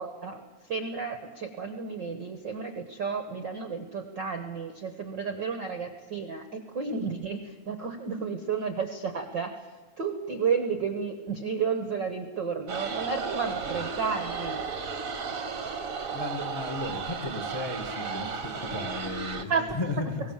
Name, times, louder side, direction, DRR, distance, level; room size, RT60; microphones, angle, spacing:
voice 1, 0.0-9.7 10.0-14.6 19.5-19.6, right 5 dB, 60° right, 7 dB, 1.1 m, -32 dB
sound 1, 12.7-19.4, right 5 dB, 45° right, 1.1 m, -34 dB
voice 2, 16.1-20.2, left 2 dB, 25° left, 6 dB, 0.5 m, -34 dB
23.0 x 19.0 x 7.3 m, 1.3 s
omnidirectional pair, 4.1 m